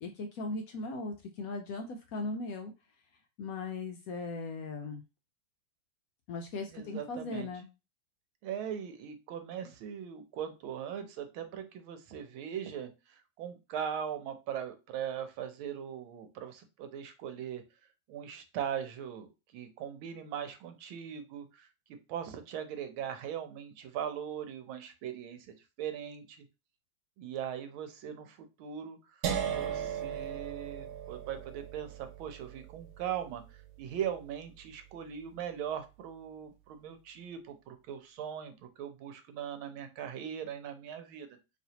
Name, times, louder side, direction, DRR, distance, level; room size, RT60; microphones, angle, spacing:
voice 1, 0.0-2.7 3.4-5.0 6.3-7.7, left 3 dB, 75° left, 4 dB, 0.8 m, -38 dB
voice 2, 6.7-7.5 8.4-12.9 13.4-17.6 18.1-19.3 19.5-21.7 22.1-26.4 27.2-29.0 29.5-33.4 33.8-41.3, right 9 dB, 90° right, 8 dB, 1.5 m, -40 dB
sound 1, 29.2-35.2, right 8 dB, 65° right, 1.1 m, -38 dB
4.1 x 3.1 x 2.8 m, 0.27 s
omnidirectional pair, 2.2 m